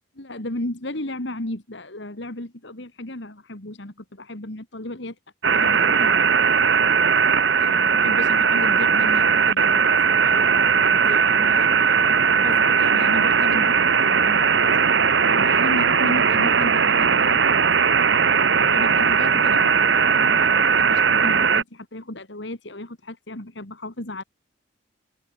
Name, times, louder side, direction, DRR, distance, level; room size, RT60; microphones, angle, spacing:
voice 1, 0.2-5.2 5.5-6.7 7.6-18.0 18.7-24.2, left 1 dB, 60° left, 2.6 m, -34 dB
sound 1, 5.4-21.6, right 6 dB, 65° right, 1.2 m, -18 dB
head